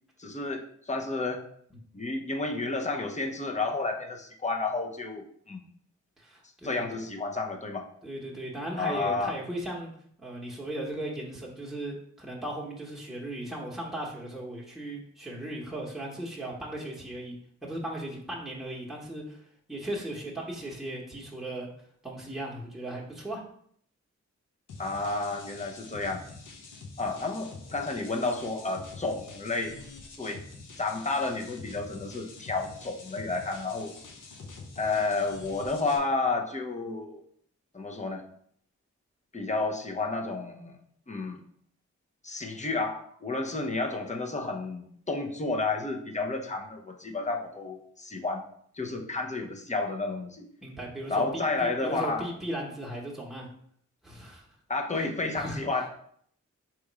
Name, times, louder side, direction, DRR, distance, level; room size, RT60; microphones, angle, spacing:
voice 1, 0.2-1.4 1.9-5.6 6.6-7.9 8.8-9.4 24.8-26.2 27.0-29.8 30.2-30.4 30.8-33.9 34.8-37.2 37.7-38.2 39.3-40.8 41.1-41.4 42.2-48.4 48.7-50.5 51.1-52.3 54.7-55.9, left 3 dB, 25° left, 2 dB, 0.8 m, -31 dB
voice 2, 6.2-7.0 8.0-9.9 10.2-17.4 17.6-19.4 19.7-21.7 22.0-23.4 48.9-49.0 50.6-53.5 54.0-54.5 54.9-55.0 55.4-55.9, right 1 dB, ahead, -4 dB, 1.2 m, -37 dB
sound 1, 24.7-36.0, left 3 dB, 90° left, 0.8 m, -46 dB
3.5 x 3.0 x 4.7 m, 0.63 s
cardioid pair, 45°, 30 cm